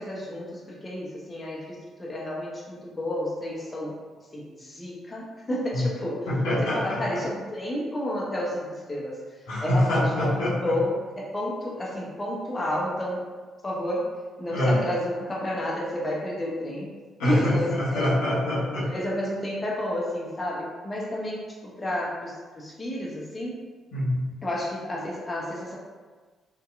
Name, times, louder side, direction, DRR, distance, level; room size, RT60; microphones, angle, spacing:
voice 1, 0.0-4.0 4.3-6.3 6.6-13.3 13.6-17.0 17.2-18.2 18.8-23.6 24.4-25.8, left 1 dB, 30° left, -4 dB, 0.6 m, -31 dB
voice 2, 6.3-7.0 9.5-10.7 14.5-14.8 17.2-18.9 23.9-24.2, left 1 dB, 70° left, -8 dB, 0.7 m, -24 dB
2.6 x 2.2 x 2.3 m, 1.4 s
hypercardioid pair, 45°, 0 cm